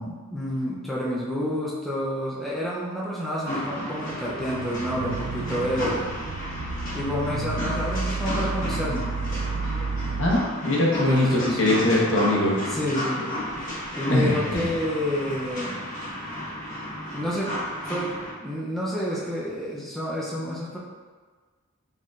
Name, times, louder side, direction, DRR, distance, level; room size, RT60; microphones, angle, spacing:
voice 1, 0.0-6.1 6.9-9.1 10.9-11.6 12.7-13.3 13.5-13.7 14.0-15.8 17.1-17.5 17.9-20.8, equal, ahead, -8 dB, 0.5 m, -29 dB
sound 1, 3.4-18.3, equal, 40° left, 1.4 m, -33 dB
sound 2, 4.3-10.4, right 4 dB, 85° right, 0.3 m, -31 dB
voice 2, 10.2-12.6 14.1-14.3, left 1 dB, 65° left, -4 dB, 1.0 m, -22 dB
4.3 x 3.7 x 2.4 m, 1.4 s
head